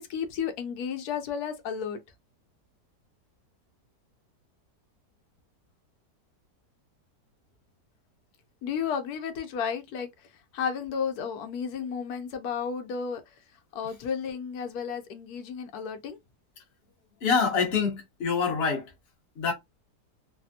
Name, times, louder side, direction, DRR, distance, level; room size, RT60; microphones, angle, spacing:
voice 1, 0.0-2.0 8.6-13.4 13.7-16.2, left 6 dB, 70° left, 1.1 m, -33 dB
voice 2, 17.2-18.9 19.4-19.5, left 5 dB, 45° left, 1.0 m, -26 dB
3.3 x 2.0 x 2.6 m
omnidirectional pair, 1.8 m